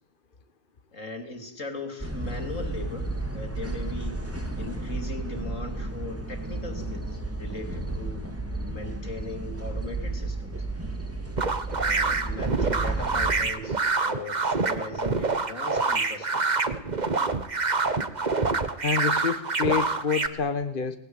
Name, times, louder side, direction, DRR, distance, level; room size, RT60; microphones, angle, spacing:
voice 1, 0.9-3.1 3.3-4.2 4.6-8.3 8.7-10.7 11.7-16.6, left 2 dB, 75° left, 7 dB, 3.9 m, -39 dB
sound 1, 2.0-13.5, right 2 dB, 10° right, 3.3 m, -33 dB
sound 2, 11.4-20.3, right 3 dB, 35° right, 1.5 m, -26 dB
voice 2, 18.8-21.0, left 6 dB, 40° left, 9 dB, 1.5 m, -27 dB
29.5 x 19.5 x 8.4 m, 0.82 s
omnidirectional pair, 1.3 m